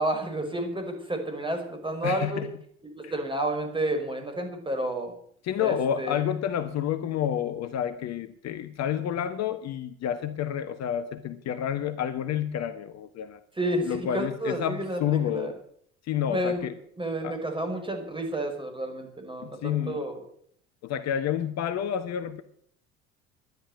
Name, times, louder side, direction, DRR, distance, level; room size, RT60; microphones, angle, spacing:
voice 1, 0.0-2.4 3.0-5.1 5.6-6.2 13.6-15.5 16.3-16.7 17.0-20.2, right 1 dB, 15° right, 5.5 m, -30 dB
voice 2, 2.0-2.5 3.0-3.1 5.4-13.4 13.8-15.6 16.1-16.7 17.2-17.4 19.4-20.0 20.8-22.4, left 9 dB, 45° left, 1.2 m, -29 dB
13.0 x 10.5 x 9.5 m
figure-of-eight pair, 65°, 35 cm